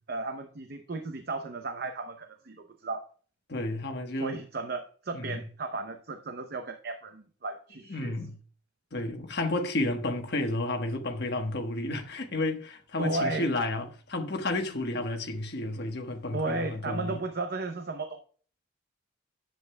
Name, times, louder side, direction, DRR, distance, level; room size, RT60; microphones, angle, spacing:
voice 1, 0.1-3.1 4.2-8.1 13.0-13.5 16.3-18.2, right 3 dB, 50° right, 0.7 m, -34 dB
voice 2, 3.5-4.4 5.1-5.4 7.9-8.4 8.9-17.2, left 2 dB, 55° left, 1.2 m, -31 dB
10.5 x 8.0 x 2.2 m
head